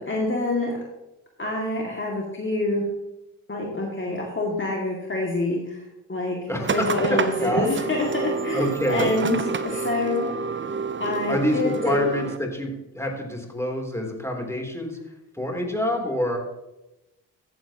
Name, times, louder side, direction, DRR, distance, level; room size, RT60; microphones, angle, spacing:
voice 1, 0.1-0.8 1.4-2.8 3.5-5.8 6.1-6.4 6.7-10.3 11.0-12.0, left 2 dB, 30° left, -2 dB, 2.3 m, -26 dB
voice 2, 6.5-7.7 8.5-9.2 11.3-16.4, equal, 5° left, 1 dB, 3.4 m, -27 dB
sound 1, 6.6-12.4, right 5 dB, 30° right, 0.8 m, -29 dB
14.5 x 7.9 x 3.0 m, 0.96 s
supercardioid pair, 50°, 41 cm